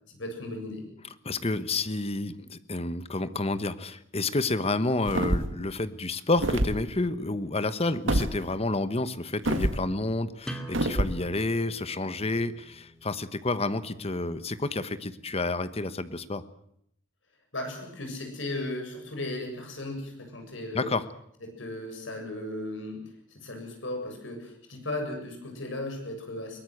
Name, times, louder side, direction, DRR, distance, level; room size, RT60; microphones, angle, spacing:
voice 1, 0.1-0.9 17.5-20.9 21.6-23.0 23.3-26.6, left 1 dB, 70° left, 4 dB, 7.4 m, -36 dB
voice 2, 1.2-16.4 20.7-21.0, left 2 dB, 30° left, 13 dB, 1.2 m, -29 dB
sound 1, 5.1-5.6 6.4-6.8 8.1-8.3 9.5-9.8 10.7-11.2, right 1 dB, 70° right, 2.1 m, -26 dB
sound 2, 10.4-15.8, right 1 dB, 5° left, 2.6 m, -46 dB
22.5 x 19.5 x 7.9 m, 0.72 s
head